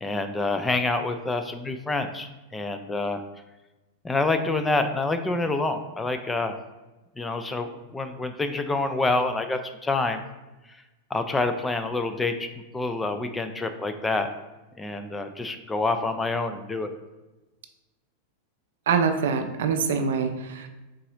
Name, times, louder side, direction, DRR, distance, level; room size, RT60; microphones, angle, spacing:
voice 1, 0.0-3.2 4.0-6.5 7.2-10.2 11.1-12.5 12.7-14.3 14.8-16.9, left 3 dB, 10° left, 7 dB, 0.3 m, -27 dB
voice 2, 18.9-20.7, right 5 dB, 60° right, 6 dB, 0.4 m, -24 dB
3.8 x 3.7 x 2.9 m, 1.1 s
figure-of-eight pair, 90°, 0 cm